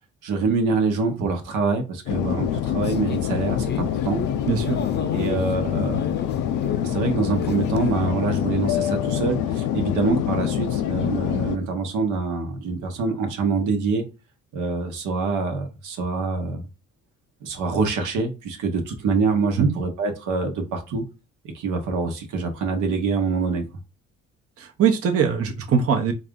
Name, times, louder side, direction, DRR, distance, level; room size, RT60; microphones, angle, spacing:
voice 1, 0.2-4.2 5.1-6.1 6.8-14.0 14.5-16.7 17.4-21.0 21.5-23.7, right 4 dB, 80° right, 1.0 m, -25 dB
sound 1, 2.1-11.6, left 10 dB, 85° left, 0.5 m, -25 dB
sound 2, 2.8-7.9, left 5 dB, 35° left, 0.6 m, -36 dB
voice 2, 4.5-4.8 19.6-19.7 24.6-26.1, right 6 dB, 50° right, 0.8 m, -21 dB
4.1 x 2.5 x 3.6 m
cardioid pair, 90°, 30 cm